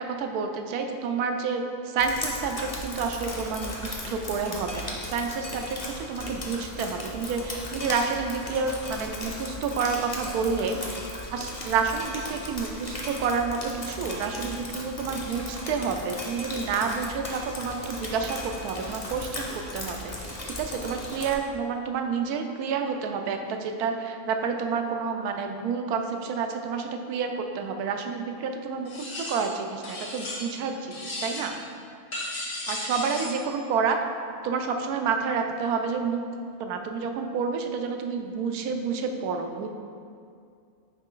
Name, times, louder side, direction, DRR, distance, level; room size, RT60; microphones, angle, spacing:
voice 1, 0.0-11.0 11.3-31.5 32.7-34.0 34.4-36.2 36.6-39.7, right 5 dB, 90° right, 5 dB, 1.1 m, -29 dB
Drip, 2.0-21.3, left 1 dB, 30° left, 0.7 m, -37 dB
sound 1, 28.9-29.5 29.8-30.6 30.9-31.6 32.1-33.4, left 1 dB, 65° left, 1.6 m, -35 dB
8.8 x 3.2 x 3.8 m, 2.4 s
omnidirectional pair, 1.6 m